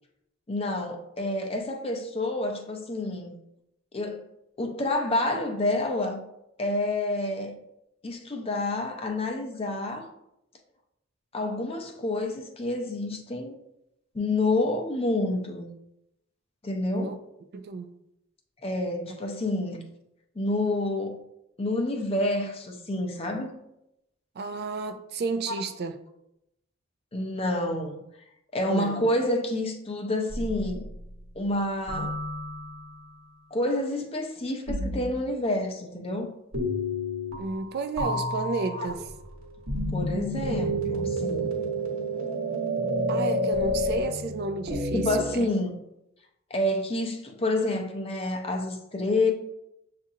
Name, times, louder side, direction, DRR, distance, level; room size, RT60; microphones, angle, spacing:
voice 1, 0.5-3.3 3.9-4.2 4.6-6.2 6.6-7.6 8.0-10.1 11.3-13.5 14.1-15.7 16.6-17.2 18.6-19.8 20.4-21.2 21.6-23.6 27.1-28.0 28.5-30.9 31.4-32.2 33.5-36.3 38.8-38.9 39.9-41.5 44.9-45.7 46.5-49.3, left 2 dB, 25° left, 0.5 m, -28 dB
voice 2, 17.5-17.9 24.4-26.0 28.7-29.1 37.4-39.1 43.1-45.5, right 4 dB, 50° right, 0.3 m, -32 dB
sound 1, 30.3-31.1 31.9-33.0 34.7-35.2 36.5-37.7 38.0-45.4, equal, 65° right, 1.1 m, -30 dB
7.3 x 2.5 x 2.7 m
head